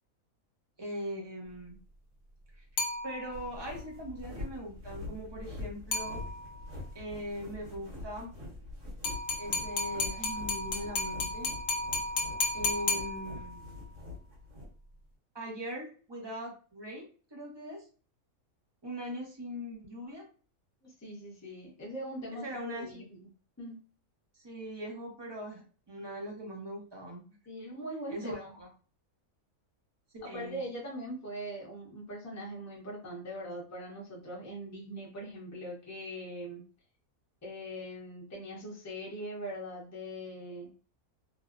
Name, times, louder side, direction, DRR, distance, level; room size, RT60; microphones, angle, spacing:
voice 1, 0.8-1.8 2.6-2.7 3.0-6.2 6.9-8.3 9.4-11.5 12.5-13.8 15.3-17.8 18.8-20.3 22.3-23.0 24.3-27.4 28.1-28.7 30.2-30.6, equal, 30° right, -1 dB, 0.5 m, -41 dB
sound 1, 2.8-3.6 5.9-6.7 9.0-13.7, left 3 dB, 60° left, 0.8 m, -34 dB
sound 2, 3.3-14.7, left 2 dB, 55° right, 1.6 m, -44 dB
voice 2, 20.8-23.3 23.6-23.8 27.5-28.5 30.2-36.6 37.4-40.7, equal, 15° left, -3 dB, 0.6 m, -41 dB
3.0 x 2.0 x 2.4 m, 0.39 s
omnidirectional pair, 1.5 m